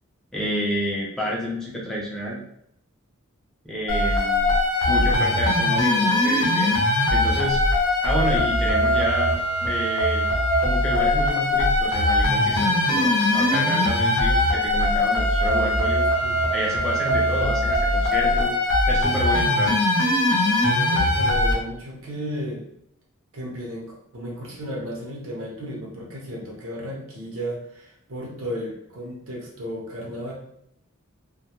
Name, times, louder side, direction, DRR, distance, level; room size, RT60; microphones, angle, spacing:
voice 1, 0.3-2.4 3.6-4.5 4.9-6.7 7.1-7.6 8.0-9.3 9.6-10.3 10.6-16.1 16.5-18.5 18.9-19.8, equal, ahead, -4 dB, 0.4 m, -29 dB
sound 1, 3.9-21.5, left 1 dB, 75° left, 0.6 m, -21 dB
voice 2, 20.6-22.6 23.3-30.3, equal, 70° right, -2 dB, 0.7 m, -34 dB
2.2 x 2.0 x 2.9 m, 0.73 s
head